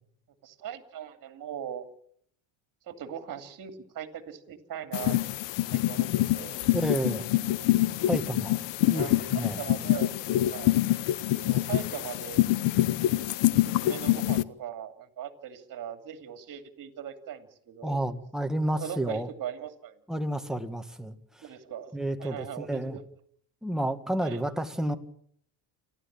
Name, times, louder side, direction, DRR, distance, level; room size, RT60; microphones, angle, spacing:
voice 1, 0.4-1.8 2.9-5.2 5.7-6.6 8.9-9.1 9.6-10.1 10.4-10.7 11.4-12.5 13.6-18.0 18.7-20.0 21.4-21.9 22.2-23.0 24.2-24.4, right 9 dB, 45° right, 7 dB, 2.8 m, -39 dB
sound 1, 4.9-14.4, left 15 dB, 65° left, 1.1 m, -26 dB
voice 2, 6.7-7.2 8.1-8.6 8.9-9.6 17.8-19.3 20.1-21.4 21.9-23.0 23.6-25.0, right 1 dB, ahead, 5 dB, 1.9 m, -30 dB
28.5 x 12.0 x 8.9 m, 0.65 s
cardioid pair, 130°, 48 cm